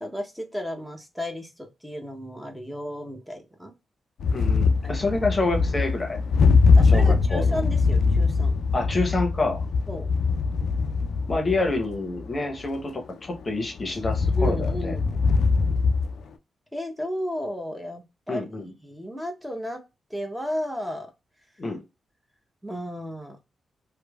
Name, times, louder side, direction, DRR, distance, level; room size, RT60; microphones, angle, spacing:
voice 1, 0.0-3.7 4.8-5.0 6.8-8.5 9.9-10.1 14.3-15.2 16.7-19.8 20.1-21.1 22.6-23.4, equal, 5° right, 0.9 m, -33 dB
sound 1, 4.2-12.9 13.4-13.5 13.7-16.2, left 4 dB, 75° left, 0.3 m, -22 dB
voice 2, 4.3-6.2 6.9-7.6 8.7-9.7 11.3-15.0 18.3-18.7 21.6-21.8, left 2 dB, 40° left, 0.8 m, -27 dB
3.0 x 2.1 x 2.3 m
hypercardioid pair, 40°, 0 cm